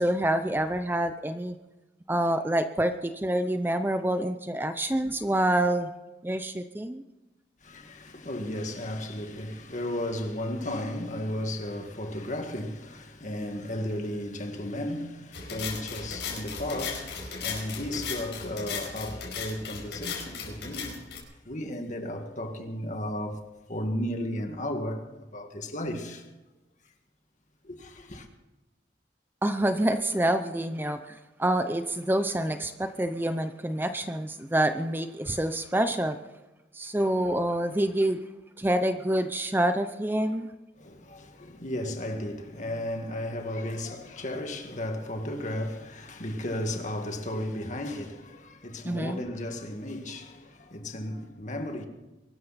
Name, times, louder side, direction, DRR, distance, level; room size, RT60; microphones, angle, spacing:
voice 1, 0.0-1.6 2.1-5.9 6.2-7.0 29.4-36.2 36.7-38.2 38.6-40.5 48.8-49.2, right 1 dB, 10° right, 0.6 m, -27 dB
voice 2, 7.6-21.1 21.5-25.0 25.3-26.3 27.6-28.3 40.8-51.9, left 1 dB, 45° left, 2.1 m, -34 dB
sound 1, 15.3-21.2, left 5 dB, 80° left, 5.0 m, -37 dB
23.0 x 12.5 x 4.3 m
head